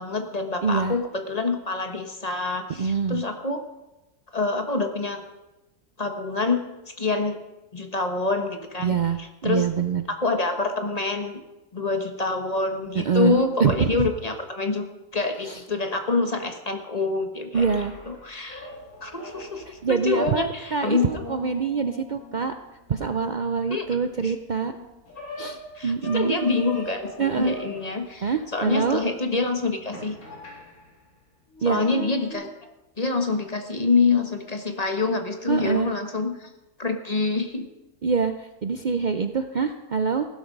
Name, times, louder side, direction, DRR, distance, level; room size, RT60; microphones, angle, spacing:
voice 1, 0.0-3.6 4.3-5.2 6.0-6.6 7.0-7.4 7.7-8.9 9.4-9.7 10.1-11.4 11.7-14.9 15.1-17.7 18.1-18.7 19.0-21.2 23.7-23.9 24.2-24.3 25.8-30.2 31.6-32.5 33.0-36.5 36.8-37.6, left 3 dB, 25° left, 5 dB, 1.2 m, -26 dB
voice 2, 0.6-1.0 2.8-3.2 8.8-9.2 9.4-10.0 12.9-14.0 15.4-15.6 17.5-17.9 19.8-22.5 22.9-24.8 25.4-26.3 27.2-27.5 28.2-29.0 31.6-31.8 35.5-35.9 38.0-40.3, right 5 dB, 80° right, 8 dB, 0.4 m, -25 dB
sound 1, 17.5-31.1 31.5-32.3, left 1 dB, 65° left, 4.2 m, -41 dB
16.0 x 12.0 x 5.3 m, 1.0 s
omnidirectional pair, 1.7 m